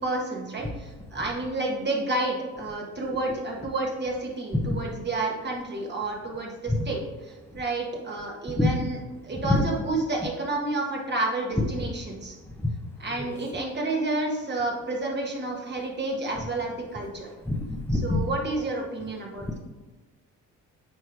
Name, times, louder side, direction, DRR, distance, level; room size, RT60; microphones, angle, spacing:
voice 1, 0.0-7.0 7.2-9.0 9.2-12.4 13.0-17.3 17.9-19.6, right 2 dB, 35° right, -1 dB, 1.6 m, -30 dB
voice 2, 17.5-18.2, left 2 dB, 5° left, -1 dB, 0.9 m, -25 dB
9.1 x 3.2 x 4.8 m, 1.2 s
cardioid pair, 90°, 30 cm